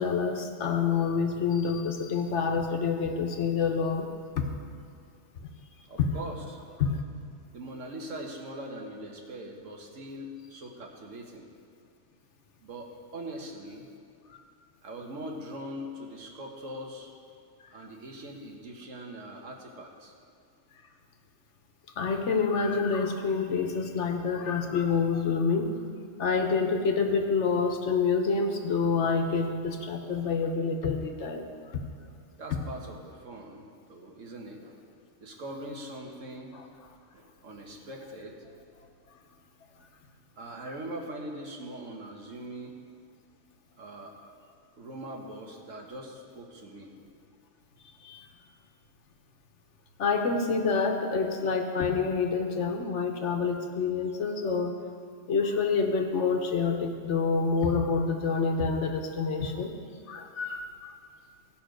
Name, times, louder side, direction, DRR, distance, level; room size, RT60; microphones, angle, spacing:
voice 1, 0.0-4.1 4.4-4.5 6.0-6.1 6.8-7.0 22.0-25.7 26.2-31.8 36.5-36.6 48.0-48.3 50.0-54.8 55.3-59.7 60.1-60.7, left 5 dB, 65° left, 4 dB, 1.2 m, -27 dB
voice 2, 5.9-6.6 7.5-11.4 12.6-13.9 14.8-17.1 17.7-20.1 32.4-33.6 33.9-34.8 35.2-36.5 37.1-38.4 40.4-42.8 43.8-44.3 44.8-46.9, right 1 dB, 80° right, 1 dB, 1.6 m, -41 dB
16.5 x 5.8 x 5.1 m, 2.2 s
omnidirectional pair, 1.3 m